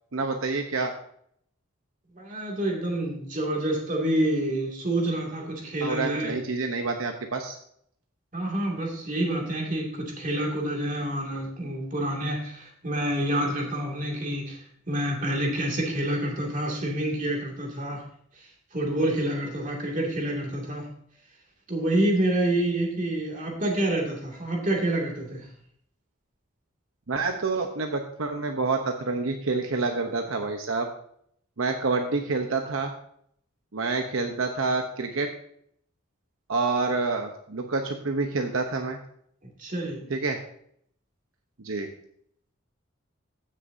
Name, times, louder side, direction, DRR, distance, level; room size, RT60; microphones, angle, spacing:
voice 1, 0.1-0.9 5.8-7.6 27.1-30.9 31.6-32.9 33.7-35.3 36.5-39.0 40.1-40.4 41.6-41.9, right 3 dB, 75° right, 4 dB, 0.9 m, -28 dB
voice 2, 2.1-6.4 8.3-18.0 18.4-20.9 21.7-25.5 39.6-40.1, right 1 dB, 40° right, -1 dB, 2.3 m, -28 dB
15.5 x 6.6 x 2.7 m, 0.66 s
head